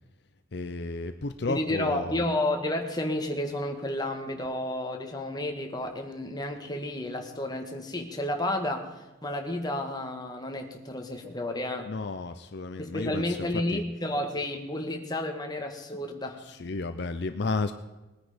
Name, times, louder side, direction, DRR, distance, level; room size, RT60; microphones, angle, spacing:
voice 1, 0.5-2.3 11.9-13.8 16.4-17.7, left 3 dB, 55° left, 9 dB, 0.6 m, -33 dB
voice 2, 1.5-11.9 12.8-16.4, left 1 dB, 20° left, 3 dB, 1.6 m, -31 dB
19.5 x 10.0 x 5.1 m, 1.1 s
head